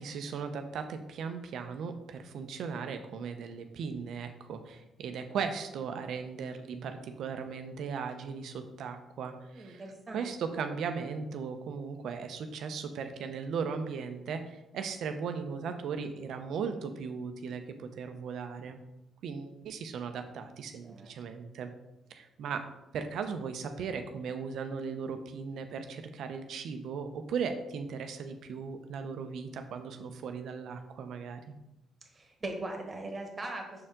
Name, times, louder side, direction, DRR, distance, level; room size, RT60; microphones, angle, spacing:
voice 1, 0.0-9.8 10.1-18.8 19.2-21.7 22.1-31.4, right 6 dB, 75° right, 7 dB, 0.7 m, -37 dB
voice 2, 9.5-10.3 20.8-21.1 32.0-33.9, right 2 dB, 30° right, 3 dB, 1.5 m, -40 dB
6.5 x 4.5 x 3.7 m, 0.93 s
cardioid pair, 90°, 0 cm